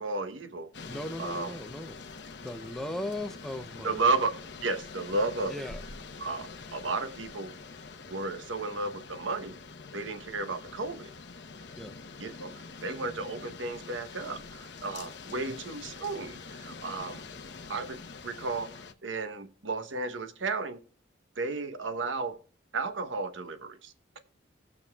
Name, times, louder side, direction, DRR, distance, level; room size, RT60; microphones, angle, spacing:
voice 1, 0.0-0.7 1.2-1.6 3.8-4.3 4.6-5.7 6.2-7.5 8.1-9.5 9.9-11.1 12.2-17.2 17.7-18.7 19.0-20.8 21.4-22.4 22.7-23.9, right 3 dB, 80° right, 9 dB, 1.0 m, -33 dB
sound 1, 0.7-18.9, left 4 dB, 65° left, 0.9 m, -45 dB
voice 2, 0.8-2.0 2.4-3.9 5.5-5.8 11.8-11.9 15.3-15.6, left 1 dB, ahead, 7 dB, 0.7 m, -38 dB
18.5 x 7.0 x 2.3 m, 0.42 s
head